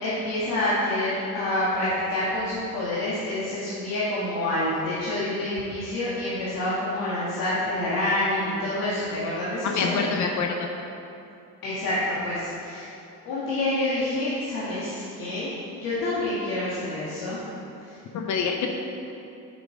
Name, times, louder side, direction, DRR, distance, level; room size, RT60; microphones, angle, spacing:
voice 1, 0.0-10.1 11.6-12.9 13.2-17.4 17.8-17.9, left 1 dB, 80° left, -9 dB, 1.8 m, -27 dB
voice 2, 9.6-10.7 18.1-18.7, left 5 dB, 60° left, 3 dB, 0.7 m, -26 dB
8.2 x 6.0 x 5.0 m, 2.8 s
cardioid pair, 140°, 33 cm